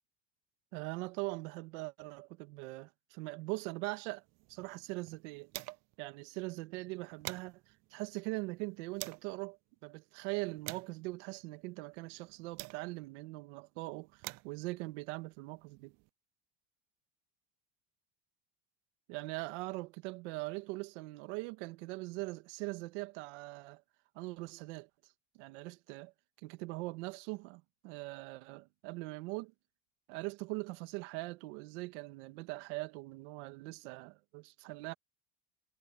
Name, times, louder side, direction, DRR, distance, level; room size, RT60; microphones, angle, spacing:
voice 1, 0.7-5.5 6.0-16.0 19.1-23.8 24.2-26.1 26.4-29.5 30.1-34.9, right 23 dB, 85° right, 1.9 m, -42 dB
sound 1, 4.2-6.1 6.4-6.5 6.8-9.3 10.0-13.2 13.9-16.1, right 23 dB, 50° right, 0.4 m, -49 dB
cardioid pair, 150°, 35 cm